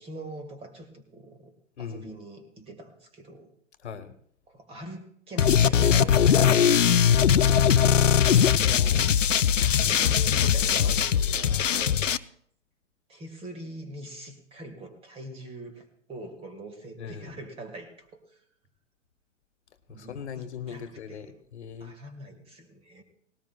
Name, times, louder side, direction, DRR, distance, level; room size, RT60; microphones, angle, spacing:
voice 1, 0.0-1.5 1.8-3.5 4.5-6.7 9.5-12.0 13.1-18.4 19.9-21.4 21.8-23.0, right 1 dB, 15° right, 7 dB, 1.8 m, -42 dB
voice 2, 1.8-2.2 3.8-4.1 6.2-6.7 8.2-9.1 10.7-11.2 17.0-17.4 19.9-21.9, left 7 dB, 65° left, 10 dB, 1.3 m, -39 dB
sound 1, 5.4-12.2, left 8 dB, 80° left, 0.6 m, -20 dB
19.0 x 18.0 x 2.3 m, 0.65 s
figure-of-eight pair, 120°, 37 cm